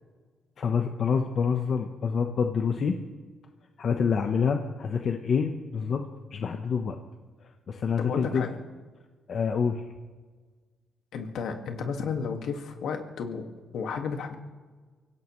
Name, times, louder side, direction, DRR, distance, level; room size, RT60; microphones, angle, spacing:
voice 1, 0.6-3.0 3.8-6.0 6.3-7.0 7.7-8.4 9.3-9.8, left 6 dB, 55° left, 5 dB, 1.1 m, -27 dB
voice 2, 8.0-8.6 11.1-13.5 13.7-14.3, left 5 dB, 75° left, 4 dB, 2.0 m, -32 dB
24.5 x 16.5 x 3.3 m, 1.4 s
cardioid pair, 90°, 0 cm